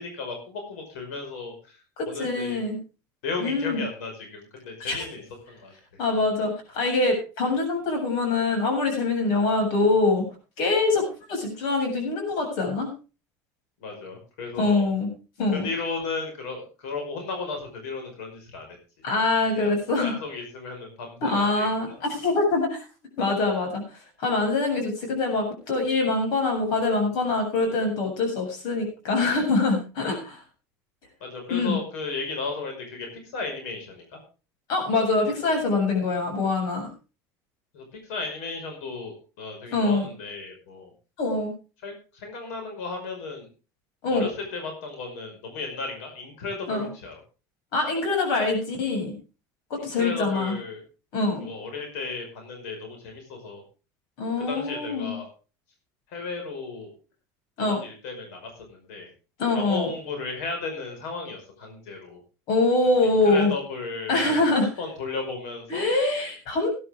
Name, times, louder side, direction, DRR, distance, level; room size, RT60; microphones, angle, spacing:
voice 1, 0.0-1.8 2.1-2.6 3.2-5.7 13.8-14.9 15.5-18.7 19.5-22.0 31.2-34.2 37.7-40.9 41.8-43.5 44.1-47.1 49.8-50.8 51.4-53.6 54.4-55.3 56.1-56.9 57.6-59.1 59.5-62.2 63.2-65.9, left 4 dB, 90° left, 4 dB, 5.4 m, -35 dB
voice 2, 2.0-2.8 3.4-3.8 4.8-5.0 6.0-10.2 10.6-12.9 14.6-15.1 15.4-15.7 19.0-20.2 21.2-22.8 23.2-23.8 24.2-30.4 31.5-31.8 34.7-36.9 39.7-40.1 41.2-41.5 44.0-44.3 46.7-46.9 47.7-49.1 49.7-50.5 51.1-51.5 54.2-55.2 57.6-57.8 59.4-59.9 62.5-63.5 64.1-64.7 65.7-66.7, left 3 dB, 65° left, 3 dB, 7.3 m, -24 dB
18.5 x 11.0 x 3.6 m, 0.33 s
cardioid pair, 135°, 8 cm